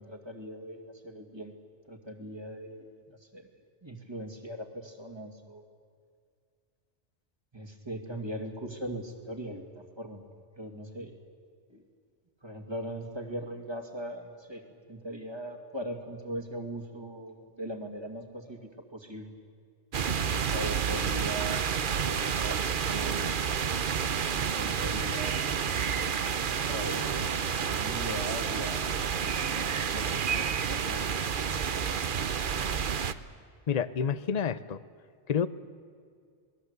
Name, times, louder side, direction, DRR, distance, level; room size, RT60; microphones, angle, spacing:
voice 1, 0.0-1.5 1.9-3.5 3.8-5.6 7.5-10.2 10.6-11.2 11.7-11.8 12.4-14.6 14.9-19.4 20.5-22.7 22.9-23.4 24.3-25.6 26.7-27.5 27.8-31.4, right 1 dB, 20° right, 4 dB, 2.4 m, -40 dB
sound 1, 19.9-33.1, right 7 dB, 50° right, 0.9 m, -30 dB
voice 2, 33.7-34.8 35.3-35.5, left 7 dB, 40° left, 15 dB, 0.8 m, -28 dB
27.5 x 20.0 x 8.2 m, 2.2 s
omnidirectional pair, 1.2 m